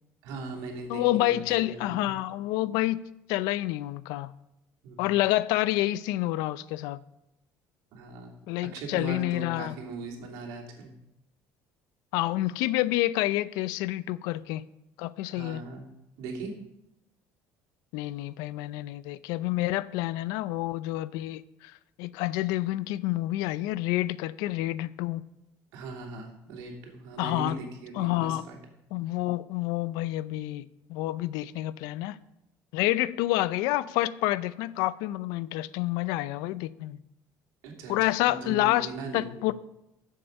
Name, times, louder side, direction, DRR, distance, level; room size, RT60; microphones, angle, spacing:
voice 1, 0.2-2.2 4.8-5.2 7.9-8.3 8.7-10.9 15.3-15.8 16.2-16.5 25.7-28.6 37.6-39.5, right 3 dB, 85° right, 2.9 m, -40 dB
voice 2, 0.9-3.0 3.3-4.3 5.0-7.0 8.5-9.8 12.1-14.6 15.0-15.6 17.9-25.2 27.2-27.6 27.9-28.4 28.9-32.2 32.7-37.0 37.9-39.5, left 16 dB, 90° left, 0.5 m, -28 dB
14.0 x 7.4 x 5.3 m
cardioid pair, 160°, 6 cm